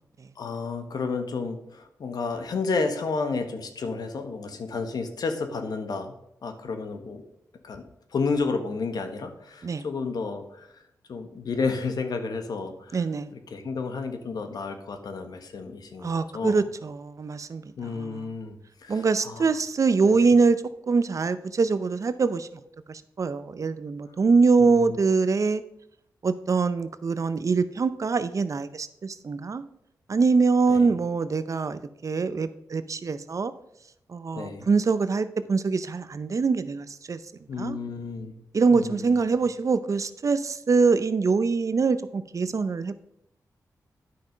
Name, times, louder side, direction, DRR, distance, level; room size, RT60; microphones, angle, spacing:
voice 1, 0.3-6.2 6.4-7.2 7.6-7.8 8.1-10.8 11.1-13.0 13.3-16.6 17.8-19.5 20.1-20.4 24.6-25.1 30.7-30.9 34.3-34.7 37.5-38.3 38.7-39.1, left 4 dB, 75° left, 7 dB, 1.3 m, -31 dB
voice 2, 12.9-13.3 16.0-18.2 18.9-22.6 22.9-25.6 26.2-29.6 30.1-33.5 34.1-37.2 37.6-37.8 38.5-42.9, right 4 dB, 50° right, 13 dB, 0.6 m, -24 dB
9.6 x 5.9 x 5.1 m, 0.80 s
cardioid pair, 70°, 7 cm